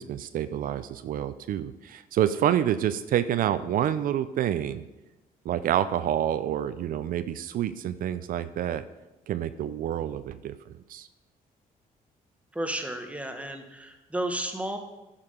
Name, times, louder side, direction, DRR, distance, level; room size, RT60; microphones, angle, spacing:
voice 1, 0.0-4.8 5.4-8.8 9.3-10.5 10.9-11.1, right 11 dB, 65° right, 13 dB, 0.5 m, -28 dB
voice 2, 12.5-14.8, right 1 dB, 10° right, 5 dB, 1.2 m, -32 dB
10.5 x 5.8 x 5.0 m, 1.0 s
cardioid pair, 90°, 15 cm